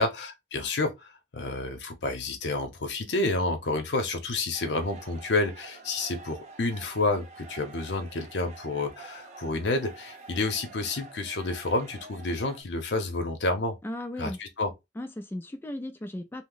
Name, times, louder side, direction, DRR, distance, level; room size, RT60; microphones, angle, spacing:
voice 1, 0.0-13.8 14.2-14.7, left 2 dB, 80° left, 0.7 m, -29 dB
sound 1, 4.5-12.6, right 4 dB, 40° right, 0.6 m, -48 dB
voice 2, 13.8-14.4 15.0-16.4, left 1 dB, 15° left, 0.3 m, -36 dB
2.8 x 2.0 x 3.7 m
head